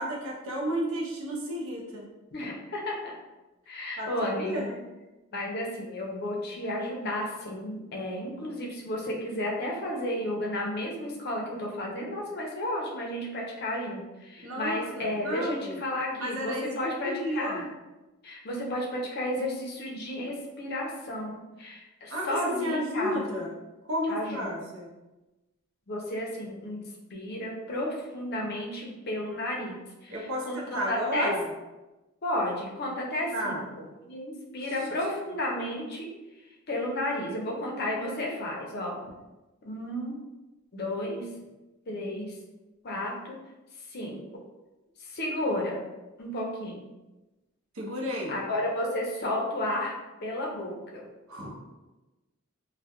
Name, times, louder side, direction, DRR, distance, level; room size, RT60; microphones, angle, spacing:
voice 1, 0.0-2.0 4.0-4.8 14.4-15.8 16.2-17.6 22.1-23.5 23.9-24.9 30.1-31.5 33.3-33.6 34.6-34.9 47.7-48.4 51.3-51.6, equal, 80° right, -2 dB, 0.6 m, -32 dB
voice 2, 2.3-3.1 3.7-4.6 5.3-17.6 18.2-23.2 24.1-24.5 25.9-26.8 27.1-30.2 30.5-31.3 32.2-33.6 34.1-36.1 36.7-38.9 39.6-40.2 40.7-41.3 41.9-42.3 42.8-43.4 43.9-44.2 45.0-45.8 46.2-46.8 48.3-49.9 50.2-51.1, left 1 dB, 50° left, -1 dB, 0.5 m, -32 dB
2.2 x 2.1 x 2.8 m, 1.1 s
head